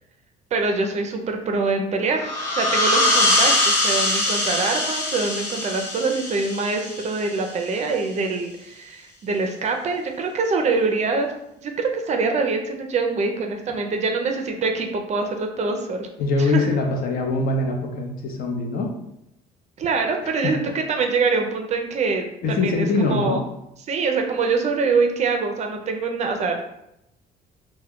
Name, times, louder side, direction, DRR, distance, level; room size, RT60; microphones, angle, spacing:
voice 1, 0.5-11.3 11.6-16.1 16.4-16.7 19.8-23.4 23.9-26.6, right 4 dB, 40° right, 4 dB, 0.4 m, -24 dB
sound 1, 2.2-7.5, left 1 dB, 85° left, 0.9 m, -22 dB
voice 2, 16.2-18.9 20.2-20.6 22.4-23.4, left 3 dB, 60° left, 2 dB, 0.6 m, -23 dB
2.2 x 2.1 x 3.5 m, 0.82 s
cardioid pair, 110°, 17 cm